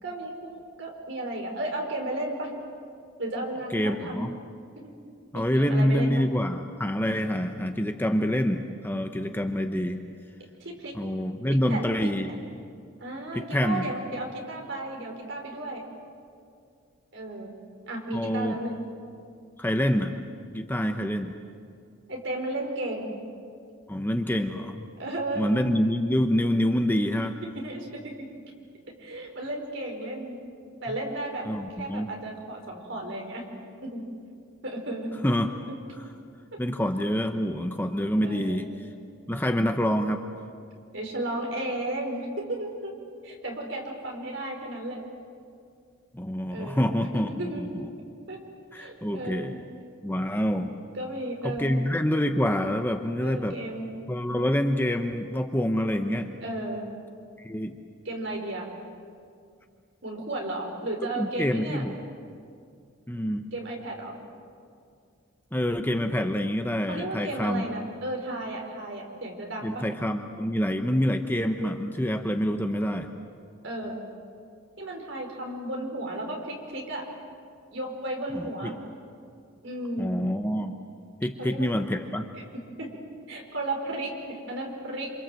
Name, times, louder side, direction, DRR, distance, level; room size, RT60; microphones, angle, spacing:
voice 1, 0.0-2.5 3.2-4.2 4.8-4.9 5.3-6.2 10.6-10.9 11.7-12.4 13.0-15.8 17.1-17.5 17.9-18.9 22.1-23.1 25.0-25.6 27.6-28.3 29.0-30.4 30.8-31.5 31.8-33.5 33.8-34.0 34.6-35.1 38.2-38.7 40.9-42.9 43.2-45.0 46.5-47.7 48.3-48.4 48.7-49.6 51.0-51.7 53.2-53.9 56.4-56.8 58.1-58.7 60.0-61.8 63.5-64.1 66.9-69.8 73.6-74.0 74.8-77.0 77.7-78.7 79.6-80.1 81.4-81.7 82.8-82.9 83.3-85.1, right 1 dB, 55° right, 1 dB, 5.1 m, -34 dB
voice 2, 3.7-4.3 5.3-10.0 10.9-12.4 13.3-13.8 18.1-18.6 19.6-20.2 20.5-21.3 23.9-24.9 25.4-27.3 31.4-32.1 35.2-35.5 36.6-38.7 39.3-40.3 46.1-47.7 48.7-49.6 50.0-50.7 51.4-53.6 54.1-56.3 57.4-57.8 61.2-62.0 63.1-63.5 65.5-67.6 69.6-73.1 78.3-78.7 80.0-80.8 81.2-82.3, equal, 10° left, 5 dB, 0.9 m, -26 dB
27.5 x 27.0 x 7.8 m, 2.3 s
head